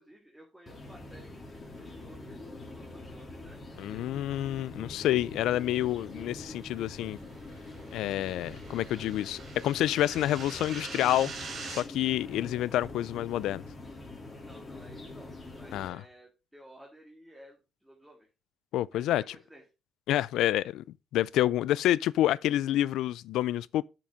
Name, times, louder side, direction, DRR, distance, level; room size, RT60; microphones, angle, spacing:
voice 1, 0.0-4.0 14.4-18.3 18.9-19.6, right 1 dB, 5° right, 2.1 m, -55 dB
sound 1, 0.7-15.9, left 2 dB, 30° left, 3.0 m, -44 dB
voice 2, 3.8-7.2 7.9-11.3 11.7-13.6 15.7-16.0 18.7-19.4 20.1-20.8 21.1-23.8, left 13 dB, 85° left, 0.3 m, -28 dB
sound 2, 7.4-11.8, right 4 dB, 60° right, 3.1 m, -44 dB
8.5 x 6.1 x 3.7 m
cardioid pair, 90°, 0 cm